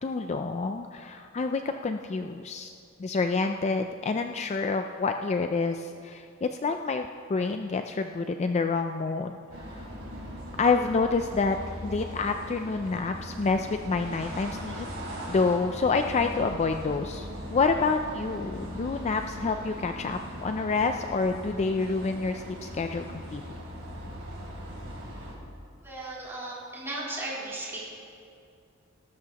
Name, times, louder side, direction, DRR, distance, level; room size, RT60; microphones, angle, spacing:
voice 1, 0.0-2.7 3.0-9.4 9.8-9.9 10.6-11.6 11.8-14.9 15.3-23.4, left 4 dB, 30° left, 6 dB, 0.4 m, -28 dB
sound 1, 9.5-25.3, equal, 65° right, 3.3 m, -39 dB
voice 2, 25.8-27.8, right 2 dB, 10° right, -8 dB, 3.8 m, -36 dB
18.5 x 13.0 x 2.9 m, 2.5 s
head